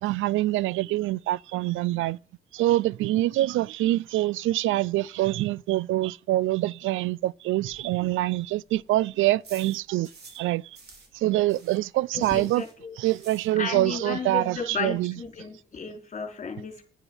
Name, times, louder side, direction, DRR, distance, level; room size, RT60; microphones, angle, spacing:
voice 1, 0.0-2.2 2.5-10.1 10.3-10.7 11.1-12.7 13.0-15.1, right 16 dB, 80° right, 0.4 m, -25 dB
sound 1, 7.6-10.5 10.7-14.0 14.2-14.3 14.6-14.7 14.9-15.4, right 4 dB, 55° right, 4.6 m, -52 dB
voice 2, 12.1-12.9 13.6-16.8, left 5 dB, 35° left, 4.3 m, -34 dB
10.0 x 9.8 x 5.5 m
cardioid pair, 90°, 20 cm